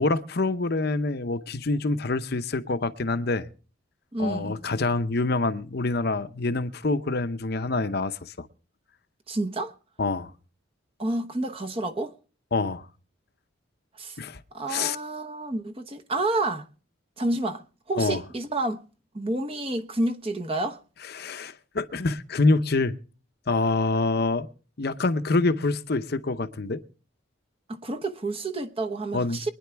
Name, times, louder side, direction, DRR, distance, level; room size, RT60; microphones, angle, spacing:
voice 1, 0.0-3.5 4.2-8.5 10.0-10.3 12.5-12.9 14.2-14.4 14.7-15.0 18.0-18.2 21.1-23.0 23.5-24.5 24.8-26.8 29.1-29.4, left 3 dB, 50° left, 0.7 m, -26 dB
voice 2, 4.1-4.6 9.3-9.7 11.0-12.1 14.0-14.2 14.5-16.7 17.2-18.8 19.1-20.8 27.7-29.5, right 2 dB, 30° right, 0.9 m, -29 dB
24.0 x 10.0 x 3.4 m
head